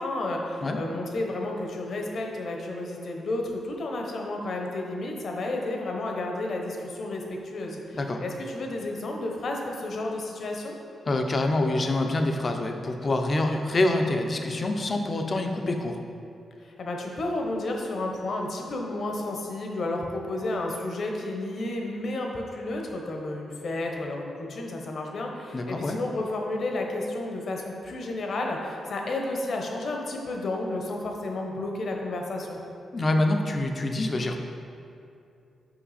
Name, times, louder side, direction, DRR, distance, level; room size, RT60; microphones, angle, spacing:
voice 1, 0.0-10.8 16.6-32.6, left 2 dB, 55° left, 1 dB, 0.9 m, -32 dB
voice 2, 11.1-16.0 25.5-26.0 32.9-34.4, left 2 dB, 35° left, 4 dB, 0.6 m, -26 dB
5.8 x 5.4 x 4.2 m, 2.6 s
cardioid pair, 110°, 0 cm